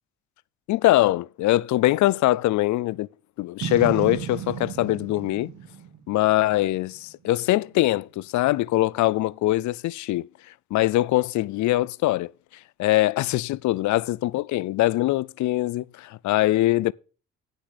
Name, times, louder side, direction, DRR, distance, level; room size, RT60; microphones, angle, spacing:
voice 1, 0.7-3.1 3.4-5.5 6.1-10.3 10.7-12.3 12.8-16.9, left 16 dB, 75° left, 0.4 m, -22 dB
Boom, 3.6-6.9, right 9 dB, 70° right, 1.4 m, -34 dB
9.8 x 6.3 x 6.6 m
cardioid pair, 90°, 30 cm